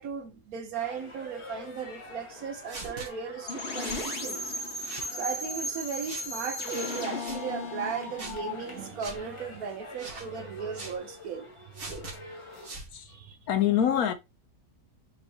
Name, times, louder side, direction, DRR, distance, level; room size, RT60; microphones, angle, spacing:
voice 1, 0.0-4.5 5.1-11.5 13.1-13.4, right 6 dB, 65° right, 1.1 m, -36 dB
sound 1, 0.7-12.7, left 3 dB, 20° left, 1.1 m, -45 dB
sound 2, 2.7-3.1 3.8-4.0 4.8-5.1 6.0-6.3 7.1-7.4 8.2-8.4 9.0-9.2 10.0-10.3 10.7-11.0 11.7-12.2 12.6-12.9, right 3 dB, 40° right, 1.2 m, -41 dB
sound 3, 3.5-9.3, left 1 dB, 45° left, 1.0 m, -36 dB
voice 2, 13.5-14.1, left 10 dB, 70° left, 1.0 m, -25 dB
6.1 x 3.1 x 2.7 m
omnidirectional pair, 1.8 m